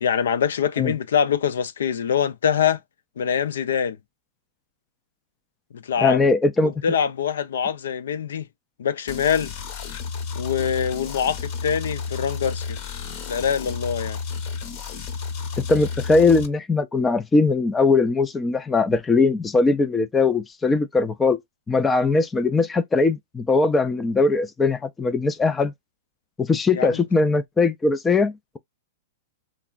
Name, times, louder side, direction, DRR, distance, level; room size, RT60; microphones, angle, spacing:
voice 1, 0.0-2.8 3.2-4.0 5.7-6.3 6.6-8.5 8.8-9.5 10.3-12.8 13.3-14.2 26.7-27.0, left 7 dB, 85° left, 0.5 m, -24 dB
voice 2, 6.0-6.7 15.6-21.4 21.7-25.7 26.4-28.6, left 3 dB, 10° left, 0.3 m, -20 dB
sound 1, 9.1-16.5, left 5 dB, 40° left, 0.9 m, -32 dB
3.3 x 2.0 x 2.3 m
hypercardioid pair, 150°, 0 cm